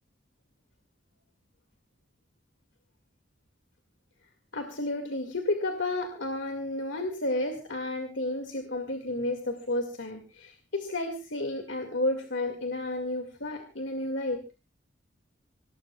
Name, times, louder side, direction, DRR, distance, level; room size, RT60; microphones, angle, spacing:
voice 1, 4.5-14.4, left 2 dB, 85° left, 4 dB, 2.2 m, -32 dB
25.0 x 18.5 x 2.4 m, 0.32 s
head